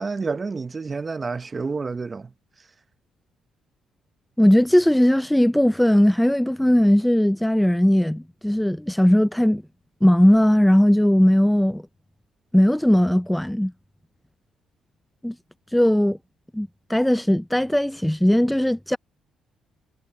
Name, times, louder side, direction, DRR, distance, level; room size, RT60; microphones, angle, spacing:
voice 1, 0.0-2.3 2.6-2.7, right 4 dB, 30° right, 0.7 m, -29 dB
voice 2, 4.4-9.6 10.0-11.8 12.5-13.7 15.2-15.3 15.7-16.2 16.5-19.0, equal, 5° left, 0.4 m, -18 dB
cardioid pair, 90°, 0 cm